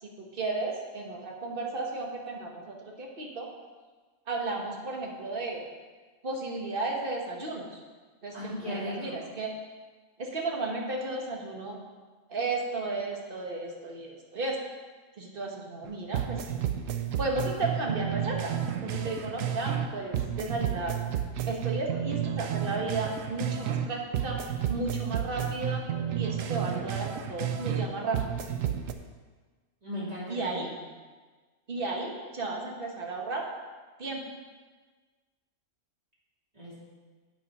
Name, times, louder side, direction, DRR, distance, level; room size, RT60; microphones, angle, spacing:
voice 1, 0.0-3.5 4.3-5.6 6.2-7.8 8.2-8.3 8.7-9.5 10.2-11.8 12.3-14.6 15.2-16.4 17.2-18.5 18.8-20.9 21.5-24.4 24.7-25.8 26.1-28.4 28.7-28.8 30.3-30.7 31.7-33.4 34.0-34.2, right 3 dB, 45° right, 0 dB, 1.4 m, -34 dB
voice 2, 8.3-9.2 29.8-30.7 36.5-36.7, left 1 dB, 30° right, -9 dB, 3.2 m, -37 dB
sound 1, 15.8-15.9 16.1-19.9 20.1-23.9 24.1-27.9 28.1-28.9, right 9 dB, 85° right, 1.0 m, -31 dB
8.7 x 5.5 x 5.3 m, 1.4 s
omnidirectional pair, 1.3 m